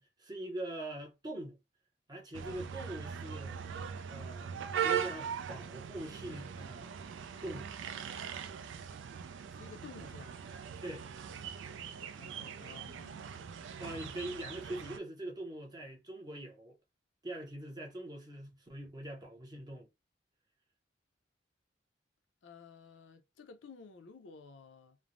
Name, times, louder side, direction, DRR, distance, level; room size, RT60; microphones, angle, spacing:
voice 1, 0.0-1.6 2.1-3.6 4.1-4.5 4.8-7.7 10.8-11.0 13.8-16.8 17.2-19.9, right 1 dB, 20° right, 0.6 m, -43 dB
sound 1, 2.3-15.0, right 8 dB, 75° right, 0.3 m, -40 dB
voice 2, 9.5-10.4 12.1-13.3 22.4-25.0, left 5 dB, 80° left, 0.5 m, -53 dB
3.1 x 2.0 x 2.5 m
head